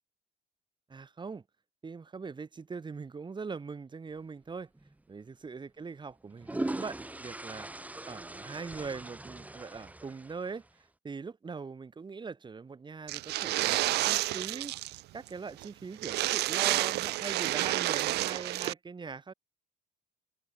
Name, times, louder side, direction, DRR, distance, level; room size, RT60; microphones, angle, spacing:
voice 1, 0.9-1.4 1.8-4.7 5.1-7.7 8.1-19.3, right 5 dB, 25° right, 7.4 m, -41 dB
sound 1, 4.7-4.9 6.1-10.7, right 2 dB, 10° right, 1.9 m, -40 dB
sound 2, 13.1-15.0 15.3-15.4 15.6-15.7 16.0-18.7, right 18 dB, 80° right, 0.9 m, -30 dB
open air
cardioid pair, 110°, 17 cm